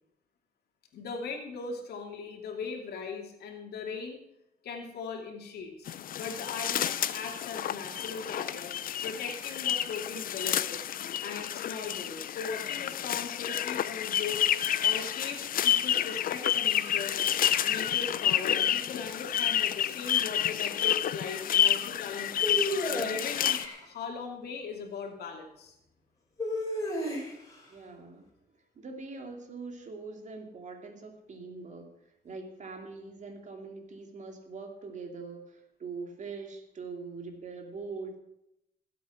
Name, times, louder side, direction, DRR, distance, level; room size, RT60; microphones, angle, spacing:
voice 1, 0.9-4.2 4.6-5.9 6.1-8.7 9.0-10.9 11.2-14.4 14.8-17.1 17.6-22.6 22.9-25.8, left 5 dB, 85° left, 2 dB, 2.7 m, -39 dB
sound 1, 5.9-23.7, left 10 dB, 60° left, 0.6 m, -29 dB
sound 2, 22.4-23.8 26.4-27.5, left 1 dB, 20° left, 4.5 m, -32 dB
voice 2, 27.7-28.3 28.7-38.2, right 4 dB, 50° right, 4 dB, 2.4 m, -43 dB
16.0 x 8.3 x 5.9 m, 0.81 s
cardioid pair, 115°, 16 cm